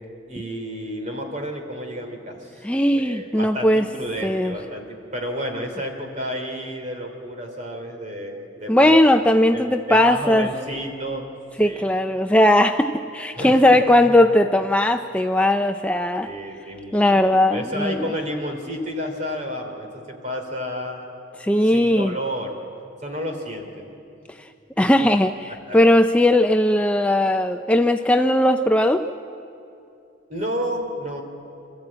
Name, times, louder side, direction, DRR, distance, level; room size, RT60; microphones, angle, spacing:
voice 1, 0.3-9.0 9.5-11.3 11.6-11.9 13.4-14.1 16.2-21.2 21.6-22.6 23.0-23.9 24.8-24.9 25.7-25.8 30.3-31.2, equal, 40° right, 4 dB, 2.9 m, -31 dB
voice 2, 2.6-3.8 4.2-4.5 8.7-10.5 11.6-16.3 16.9-18.1 21.4-22.1 24.8-29.0, left 1 dB, 5° left, 6 dB, 0.4 m, -18 dB
26.0 x 13.5 x 8.7 m, 2.7 s
head